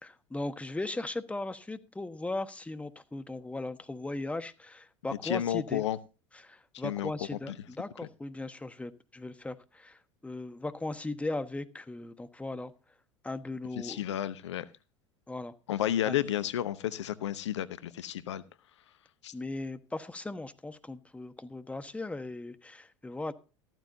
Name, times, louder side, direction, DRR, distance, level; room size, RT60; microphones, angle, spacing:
voice 1, 0.0-5.8 6.3-12.7 13.2-14.0 15.3-15.5 16.1-16.2 19.3-23.3, left 2 dB, 10° left, 1.3 m, -38 dB
voice 2, 5.2-6.0 6.8-7.1 7.5-7.6 13.8-14.7 15.7-18.4 19.2-19.3, left 11 dB, 75° left, 0.9 m, -31 dB
14.5 x 14.0 x 2.7 m
figure-of-eight pair, 75°, 15 cm